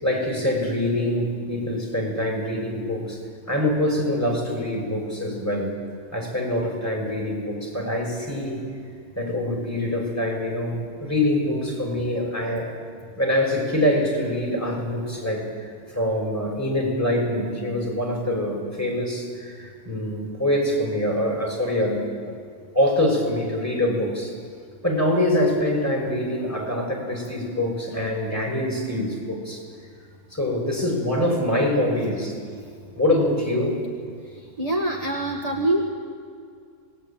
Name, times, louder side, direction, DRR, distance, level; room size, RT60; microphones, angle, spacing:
voice 1, 0.0-3.2 3.5-5.7 6.1-8.6 9.1-12.7 13.1-22.3 22.7-24.3 24.8-29.6 30.3-32.4 32.9-33.8, left 1 dB, 10° left, -1 dB, 6.5 m, -24 dB
voice 2, 34.6-35.9, right 1 dB, 25° right, 1 dB, 1.8 m, -24 dB
27.0 x 20.5 x 8.9 m, 2.2 s
omnidirectional pair, 1.5 m